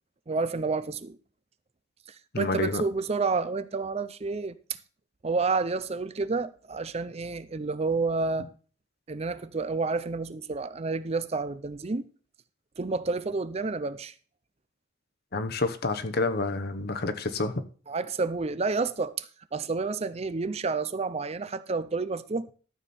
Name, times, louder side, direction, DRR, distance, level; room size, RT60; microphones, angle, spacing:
voice 1, 0.3-1.2 2.4-4.6 5.2-8.5 9.1-12.1 12.8-14.1 17.9-22.5, right 4 dB, 30° right, 0.5 m, -30 dB
voice 2, 2.3-2.8 15.3-17.6, left 3 dB, 55° left, 1.0 m, -28 dB
12.5 x 7.3 x 4.3 m
head